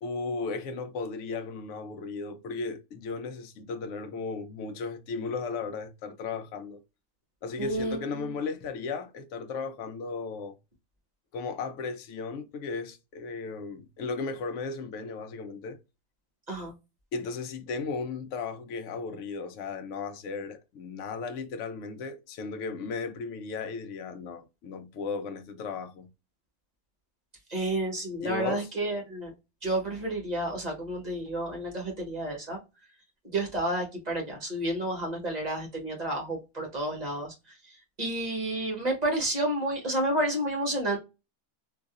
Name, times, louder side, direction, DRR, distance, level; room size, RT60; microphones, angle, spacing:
voice 1, 0.0-6.8 7.4-10.5 11.3-15.8 17.1-26.1 28.2-28.7, left 4 dB, 65° left, 0.9 m, -35 dB
voice 2, 7.6-8.3 16.5-16.7 27.5-29.3 29.6-32.6 33.2-37.3 38.0-41.0, right 1 dB, 30° right, 1.4 m, -30 dB
3.8 x 2.7 x 2.4 m
omnidirectional pair, 1.5 m